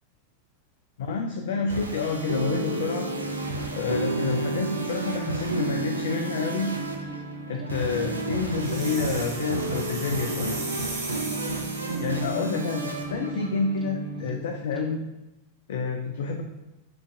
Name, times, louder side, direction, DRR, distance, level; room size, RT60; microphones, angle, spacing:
voice 1, 1.0-3.1 3.7-6.7 7.5-10.6 12.0-15.0 15.7-16.4, left 4 dB, 60° left, 4 dB, 0.3 m, -29 dB
sound 1, 1.5-14.3, right 3 dB, 80° right, 0.4 m, -32 dB
sound 2, 2.0-15.0, equal, ahead, 0.5 m, -39 dB
sound 3, 8.5-12.2, right 2 dB, 65° right, 0.9 m, -37 dB
5.5 x 2.5 x 2.6 m, 0.96 s
figure-of-eight pair, 90°, 0 cm